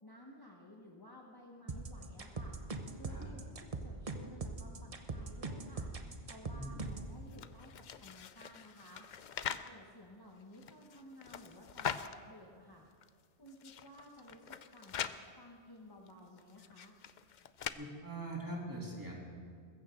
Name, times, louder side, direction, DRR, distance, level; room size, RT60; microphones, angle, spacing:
voice 1, 0.0-2.6 2.9-5.9 6.3-12.9 13.4-17.0, left 1 dB, 20° left, -2 dB, 1.2 m, -55 dB
sound 1, 1.7-7.1, right 3 dB, 35° right, 0.9 m, -41 dB
voice 2, 6.5-6.8 17.8-19.1, right 1 dB, 20° right, -3 dB, 3.0 m, -42 dB
sound 2, 7.3-9.7 10.4-12.2 12.7-12.8 13.0-13.1 13.5-15.2 16.1-17.7, left 8 dB, 55° left, 0.6 m, -43 dB
21.0 x 15.0 x 3.8 m, 2.2 s
omnidirectional pair, 1.1 m